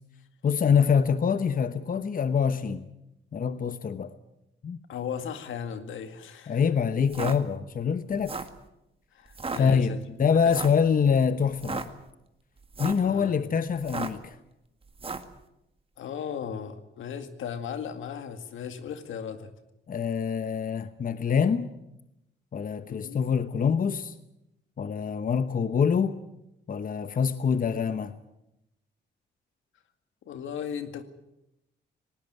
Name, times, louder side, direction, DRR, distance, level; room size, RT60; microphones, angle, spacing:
voice 1, 0.4-2.8 3.3-4.1 4.6-4.8 6.5-8.3 9.6-11.9 12.8-14.4 19.9-21.7 22.5-24.1 24.8-26.2 26.7-28.1, left 6 dB, 45° left, 1.1 m, -25 dB
voice 2, 4.9-6.6 9.1-10.0 10.4-10.6 13.0-13.6 16.0-19.5 22.9-23.3 30.2-31.0, left 7 dB, 85° left, 2.1 m, -36 dB
sound 1, 7.0-7.4 8.1-8.6 9.3-9.6 10.5-10.8 11.5-11.9 12.6-13.1 13.8-14.3 15.0-15.3, right 4 dB, 30° right, 1.9 m, -34 dB
19.5 x 19.0 x 9.1 m
cardioid pair, 85°, 20 cm